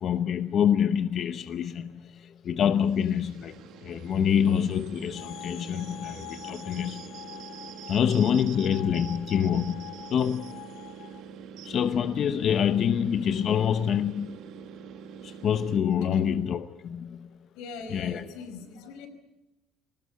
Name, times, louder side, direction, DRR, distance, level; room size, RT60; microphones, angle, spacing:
voice 1, 0.0-2.0 2.4-7.0 7.9-9.8 10.1-10.5 11.6-14.4 15.2-17.3 17.9-18.3, left 8 dB, 40° left, 0.8 m, -26 dB
sound 1, 2.6-15.8, right 8 dB, 55° right, 1.4 m, -45 dB
sound 2, 5.1-11.2, left 14 dB, 65° left, 1.1 m, -45 dB
voice 2, 17.5-19.1, left 4 dB, 90° left, 4.9 m, -41 dB
21.0 x 19.0 x 9.3 m
cardioid pair, 165°, 0 cm